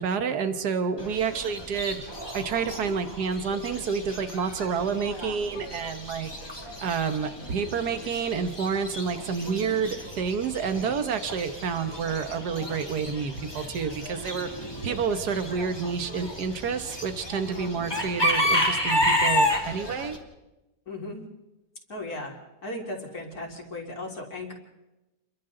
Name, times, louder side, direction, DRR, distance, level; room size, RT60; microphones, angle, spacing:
voice 1, 0.0-2.0 2.3-6.3 6.8-14.5 14.8-20.2, right 6 dB, 65° right, 9 dB, 1.9 m, -29 dB
Chicken rooster / Bird, 1.0-20.2, left 1 dB, 15° left, 2.7 m, -31 dB
voice 2, 20.9-21.2 21.9-22.3 22.6-24.5, left 2 dB, 60° left, 0 dB, 4.1 m, -36 dB
30.0 x 23.0 x 3.9 m, 0.99 s
omnidirectional pair, 1.8 m